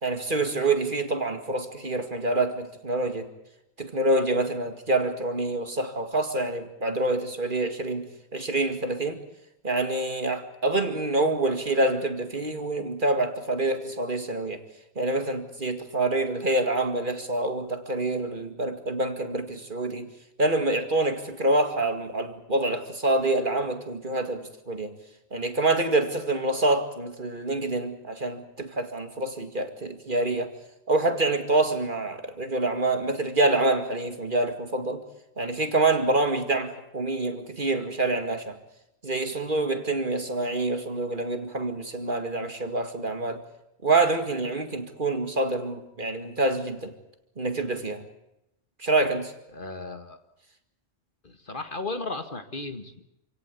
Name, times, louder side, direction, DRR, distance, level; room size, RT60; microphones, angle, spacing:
voice 1, 0.0-3.3 3.8-9.2 9.6-14.6 15.0-20.1 20.4-25.0 25.3-30.5 30.9-35.1 35.4-38.6 39.0-43.4 43.8-46.9 47.4-48.0 48.8-49.3, right 2 dB, 45° right, 7 dB, 2.3 m, -26 dB
voice 2, 49.5-50.2 51.2-53.0, left 3 dB, 45° left, 8 dB, 2.0 m, -35 dB
28.0 x 17.0 x 8.4 m, 0.87 s
omnidirectional pair, 1.2 m